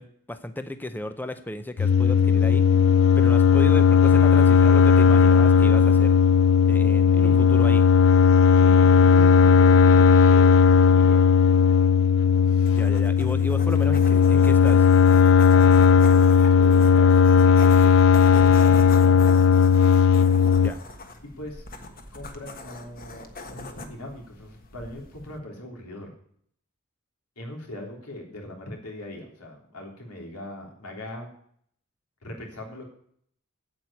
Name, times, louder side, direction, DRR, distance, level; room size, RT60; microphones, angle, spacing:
voice 1, 0.0-6.2 6.7-7.8 12.7-15.2 17.8-17.9 20.6-20.8, left 1 dB, 10° left, 9 dB, 0.5 m, -35 dB
sound 1, 1.8-20.7, left 6 dB, 60° left, 0.4 m, -16 dB
voice 2, 7.1-7.5 8.6-10.5 10.8-11.3 15.5-17.8 18.3-19.5 21.2-21.7 22.1-26.1 27.4-31.3 32.2-32.8, left 1 dB, 80° left, 1 dB, 3.5 m, -40 dB
sound 2, 12.7-25.4, left 2 dB, 40° left, 1.4 m, -41 dB
8.7 x 8.1 x 8.6 m, 0.63 s
head